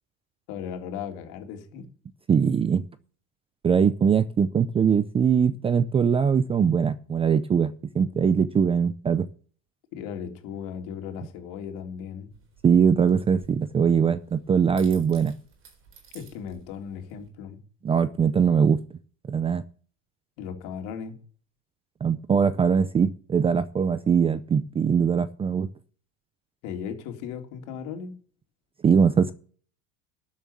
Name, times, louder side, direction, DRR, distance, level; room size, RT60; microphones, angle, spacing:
voice 1, 0.5-1.9 9.9-12.3 16.1-17.6 20.4-21.2 26.6-28.2, left 7 dB, 60° left, 3.5 m, -36 dB
voice 2, 2.3-2.9 3.6-9.3 12.6-15.3 17.8-18.8 19.3-19.6 22.0-25.7 28.8-29.3, right 6 dB, 15° right, 0.5 m, -21 dB
sound 1, 12.3-17.3, right 6 dB, 35° right, 4.1 m, -53 dB
12.5 x 7.4 x 7.0 m
cardioid pair, 150°, 36 cm